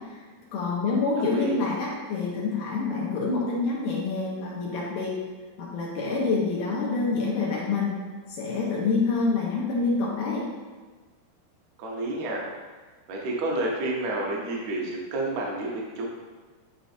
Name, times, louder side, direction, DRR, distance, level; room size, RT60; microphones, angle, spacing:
voice 1, 0.5-5.2 5.6-7.9 8.3-10.5, left 4 dB, 70° left, -4 dB, 2.1 m, -27 dB
voice 2, 1.2-1.6 11.8-12.4 13.1-16.1, right 2 dB, 80° right, -2 dB, 1.5 m, -30 dB
10.5 x 3.9 x 2.6 m, 1.3 s
omnidirectional pair, 4.6 m